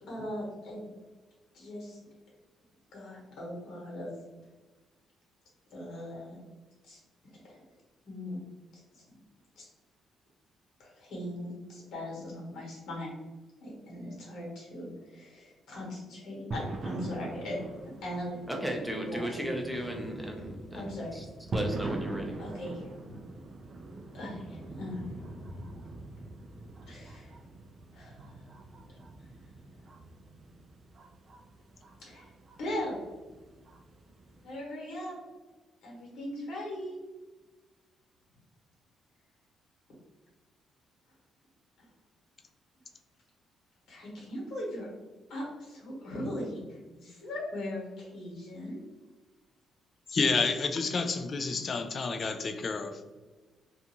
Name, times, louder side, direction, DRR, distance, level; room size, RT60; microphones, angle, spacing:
voice 1, 0.0-0.8 1.5-2.0 2.9-4.1 5.7-6.4 6.9-7.0 7.3-7.6 8.0-8.4 9.6-9.7 10.8-13.1 13.6-17.6 17.8-18.4 19.1-19.3 20.7-21.1 22.4-23.2 24.1-25.7 26.9-27.3 27.9-28.3 32.0-32.3 32.6-33.0 34.4-35.1 35.8-37.0 43.9-44.9 45.3-48.8, left 1 dB, 80° left, -3 dB, 1.2 m, -39 dB
sound 1, 16.5-34.5, right 2 dB, 45° right, 0.4 m, -42 dB
voice 2, 18.5-21.3 21.5-22.4, right 1 dB, ahead, 1 dB, 0.6 m, -35 dB
voice 3, 50.1-53.0, left 4 dB, 45° left, 6 dB, 0.3 m, -29 dB
2.5 x 2.3 x 2.8 m, 1.2 s
cardioid pair, 90°, 0 cm